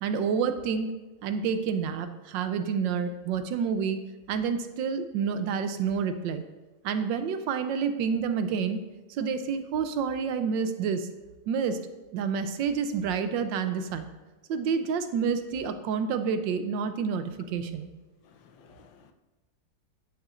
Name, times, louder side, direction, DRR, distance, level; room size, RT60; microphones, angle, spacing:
voice 1, 0.0-0.9 1.2-4.0 4.3-6.4 6.8-8.8 9.1-11.1 11.5-11.8 12.1-14.1 14.5-17.9, right 6 dB, 80° right, 1.4 m, -28 dB
voice 2, 18.2-19.1, left 6 dB, 80° left, 1.5 m, -56 dB
10.5 x 9.0 x 2.5 m
omnidirectional pair, 2.0 m